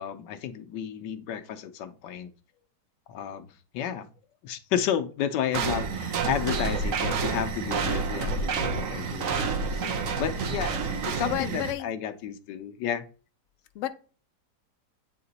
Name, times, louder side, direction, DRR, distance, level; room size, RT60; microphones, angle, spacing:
voice 1, 0.0-2.3 3.1-3.5 3.7-4.1 4.4-13.0, left 9 dB, 85° left, 9 dB, 1.3 m, -32 dB
sound 1, 5.5-11.7, right 5 dB, 60° right, 1.1 m, -29 dB
voice 2, 11.2-11.9 13.7-13.9, left 13 dB, 60° left, 9 dB, 0.8 m, -32 dB
8.5 x 2.9 x 4.0 m, 0.37 s
omnidirectional pair, 1.9 m